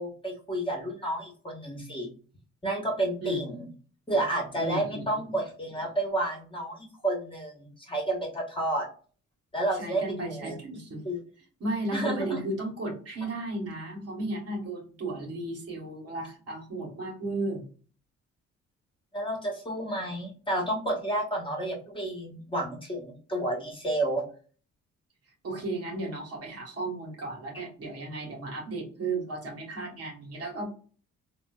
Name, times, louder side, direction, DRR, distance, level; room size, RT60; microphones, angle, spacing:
voice 1, 0.0-2.1 2.6-3.7 4.1-8.9 9.5-10.5 11.0-11.2 11.9-12.4 19.1-24.2, right 1 dB, 15° left, -1 dB, 1.3 m, -30 dB
voice 2, 4.5-5.4 9.7-11.0 11.6-17.6 25.4-30.7, right 2 dB, 50° right, 0 dB, 1.4 m, -34 dB
3.7 x 2.5 x 2.4 m, 0.41 s
cardioid pair, 90°, 30 cm